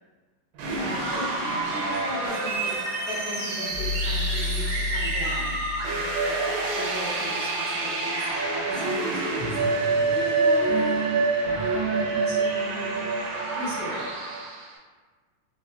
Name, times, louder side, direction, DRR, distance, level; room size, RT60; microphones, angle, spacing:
sound 1, 0.5-14.7, right 3 dB, 75° right, 2.2 m, -27 dB
voice 1, 0.7-2.7 3.1-6.0 6.7-8.2 8.6-11.2 11.4-12.9 13.5-14.1, left 1 dB, 65° left, -14 dB, 1.3 m, -37 dB
sound 2, 3.6-6.8, left 3 dB, 80° left, 1.7 m, -31 dB
5.4 x 2.0 x 2.2 m, 1.4 s
omnidirectional pair, 3.9 m